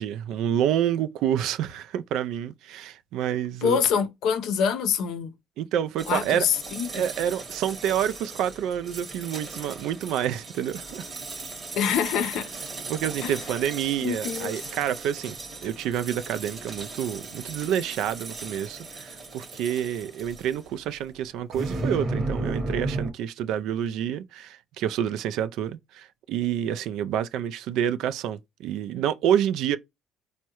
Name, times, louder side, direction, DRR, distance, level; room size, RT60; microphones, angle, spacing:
voice 1, 0.0-3.8 5.6-6.5 6.9-11.1 12.9-15.4 15.6-29.8, right 10 dB, 75° right, 0.3 m, -28 dB
voice 2, 3.6-5.3 6.1-7.0 11.8-12.5 13.2-13.3 14.0-14.5, left 7 dB, 70° left, 0.5 m, -25 dB
sound 1, 6.0-20.8 21.5-23.1, right 3 dB, 40° right, 0.9 m, -36 dB
3.5 x 2.1 x 2.8 m
supercardioid pair, 80°, 0 cm